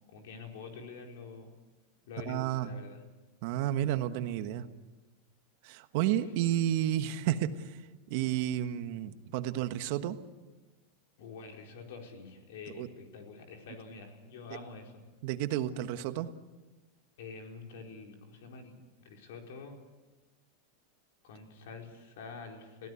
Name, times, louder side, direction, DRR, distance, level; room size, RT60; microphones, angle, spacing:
voice 1, 0.1-1.5 2.1-3.0 11.2-15.0 17.2-18.7 19.0-19.7 21.2-22.9, left 4 dB, 75° left, 2 dB, 4.6 m, -46 dB
voice 2, 2.3-2.7 3.4-4.6 5.6-7.8 8.1-10.2 12.8-12.9 15.2-16.3, right 12 dB, 60° right, 10 dB, 1.3 m, -31 dB
22.0 x 16.5 x 8.3 m, 1.2 s
supercardioid pair, 140°, 0 cm